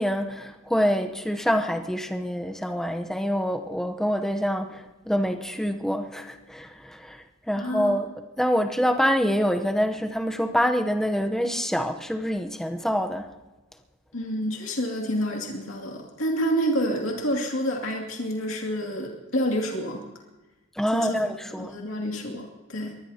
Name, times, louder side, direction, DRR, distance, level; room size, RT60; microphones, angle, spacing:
voice 1, 0.0-13.3 20.8-21.7, equal, ahead, 0.8 m, -26 dB
voice 2, 7.6-8.0 14.1-20.0 20.9-21.2 21.5-22.9, equal, 65° left, 2.5 m, -28 dB
23.5 x 20.0 x 2.9 m
head